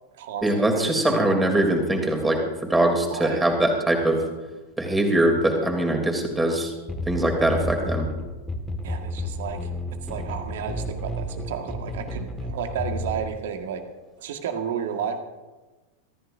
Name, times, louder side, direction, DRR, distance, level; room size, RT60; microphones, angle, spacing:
voice 1, 0.4-2.4 2.7-4.2 4.8-6.7 7.1-8.1, right 1 dB, 10° right, 3 dB, 3.3 m, -22 dB
voice 2, 3.1-3.4 8.8-9.7 10.0-13.8 14.2-15.2, right 7 dB, 55° right, 5 dB, 1.9 m, -32 dB
sound 1, 6.9-13.3, left 1 dB, 10° left, 2.0 m, -31 dB
24.0 x 14.5 x 2.8 m, 1.2 s
figure-of-eight pair, 90°, 0 cm